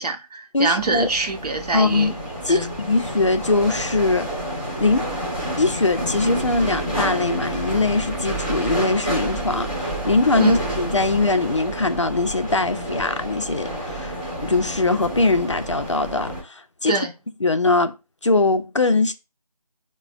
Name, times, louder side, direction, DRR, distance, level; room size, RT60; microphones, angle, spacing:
voice 1, 0.0-2.2 2.5-2.7 10.4-10.6 16.9-17.1, right 4 dB, 75° right, 0.8 m, -25 dB
voice 2, 0.5-1.1 1.7-2.1 2.5-4.3 4.8-5.1 5.6-16.9 17.4-17.9 18.2-19.1, left 3 dB, 50° left, 0.4 m, -21 dB
sound 1, 0.8-16.4, right 1 dB, 10° right, 0.6 m, -29 dB
4.0 x 2.0 x 2.5 m
figure-of-eight pair, 170°, 20 cm